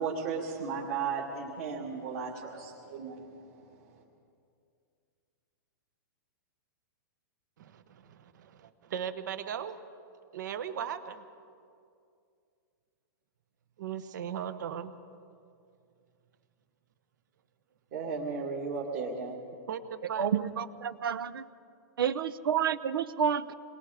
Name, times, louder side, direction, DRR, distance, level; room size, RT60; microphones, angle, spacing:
voice 1, 0.0-3.4 3.8-4.0 17.9-19.3, right 5 dB, 35° right, -4 dB, 2.2 m, -35 dB
voice 2, 7.6-9.8 10.3-11.2 13.8-14.9 19.7-20.5, right 8 dB, 55° right, 11 dB, 1.1 m, -38 dB
voice 3, 20.2-21.4 22.0-23.5, right 8 dB, 80° right, 15 dB, 0.8 m, -29 dB
28.5 x 21.5 x 5.0 m, 2.4 s
hypercardioid pair, 175°, 12 cm